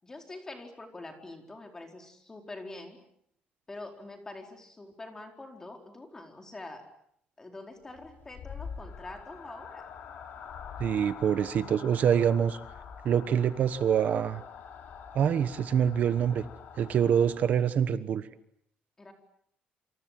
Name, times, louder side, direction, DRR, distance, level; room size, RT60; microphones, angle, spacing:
voice 1, 0.0-3.0 3.7-6.9 7.4-9.9 19.0-19.1, left 2 dB, 15° left, 3 dB, 4.5 m, -45 dB
sound 1, 7.9-17.9, left 7 dB, 60° left, 4.2 m, -45 dB
voice 2, 10.8-12.6 13.0-14.4 15.1-16.4 16.8-18.2, right 8 dB, 55° right, 12 dB, 1.1 m, -25 dB
28.5 x 26.0 x 7.6 m, 0.71 s
cardioid pair, 165°, 3 cm